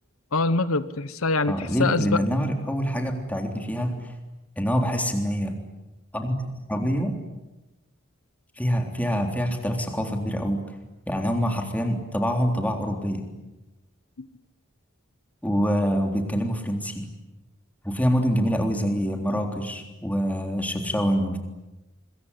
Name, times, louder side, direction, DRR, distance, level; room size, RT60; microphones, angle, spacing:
voice 1, 0.3-2.2 14.2-14.3, left 3 dB, 85° left, 14 dB, 1.1 m, -24 dB
voice 2, 1.5-4.1 4.6-5.6 6.1-7.1 8.6-10.6 11.1-13.3 15.4-17.1 17.8-21.4, equal, 5° left, 4 dB, 3.6 m, -25 dB
25.5 x 22.5 x 10.0 m, 1.0 s
head